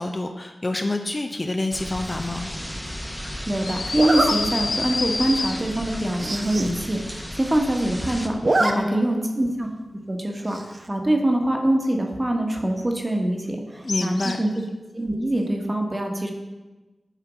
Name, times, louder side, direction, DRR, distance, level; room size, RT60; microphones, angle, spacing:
voice 1, 0.0-2.5 8.6-9.0 13.8-14.4, left 2 dB, 30° left, 5 dB, 0.6 m, -27 dB
sound 1, 1.7-8.3, equal, 5° left, 0.9 m, -35 dB
Zipper (clothing), 2.0-2.4 3.9-4.3 4.9-5.1 5.4-5.5 5.7-5.8 6.1-6.7 7.1-7.2 7.4-7.9 8.2-8.7 9.1-9.2 10.5-10.9, right 2 dB, 40° right, 0.7 m, -25 dB
voice 2, 3.5-9.7 10.1-10.6 10.9-14.6 14.9-16.3, right 1 dB, 20° right, 2 dB, 1.3 m, -24 dB
sound 2, 3.6-5.9 13.9-14.6, left 4 dB, 75° left, 0.6 m, -28 dB
10.0 x 4.4 x 6.1 m, 1.1 s
wide cardioid pair, 105°, 0 cm